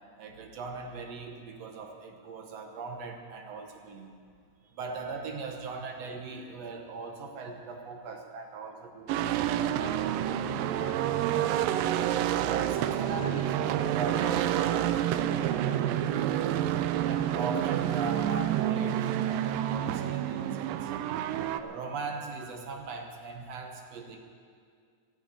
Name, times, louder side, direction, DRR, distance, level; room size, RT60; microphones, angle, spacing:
voice 1, 0.2-4.1 4.6-10.1 10.4-11.5 12.4-16.6 17.0-20.9 21.6-24.2, right 3 dB, 65° right, 3 dB, 1.8 m, -40 dB
sound 1, 9.1-21.6, right 11 dB, 85° right, 2.2 m, -28 dB
14.5 x 9.3 x 8.7 m, 2.2 s
omnidirectional pair, 4.0 m